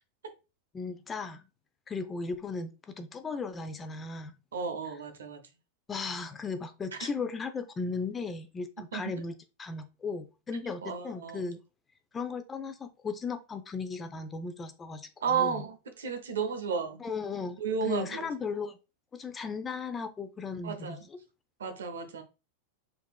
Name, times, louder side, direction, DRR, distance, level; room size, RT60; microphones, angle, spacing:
voice 1, 0.7-1.5 1.9-4.4 5.9-9.3 9.6-11.6 12.1-15.6 17.0-17.6 17.9-18.8 19.1-21.2, left 4 dB, 20° left, 0.6 m, -36 dB
voice 2, 4.5-5.4 7.0-7.1 8.9-9.2 10.8-11.5 15.2-17.0 17.6-18.3 20.6-21.1 21.6-22.2, right 6 dB, 80° right, 0.7 m, -33 dB
4.9 x 2.7 x 2.3 m
hypercardioid pair, 100°, 0 cm